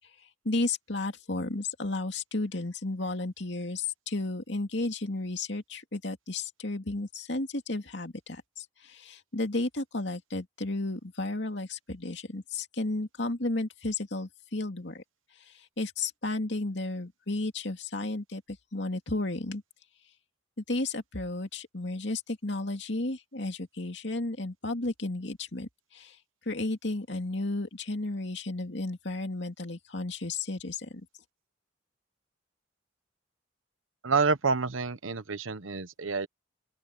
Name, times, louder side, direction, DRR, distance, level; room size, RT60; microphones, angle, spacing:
voice 1, 0.4-15.0 15.8-19.6 20.7-26.2 26.5-31.0, left 2 dB, 60° left, 2.5 m, -33 dB
voice 2, 34.0-36.3, right 4 dB, 85° right, 1.1 m, -28 dB
open air
head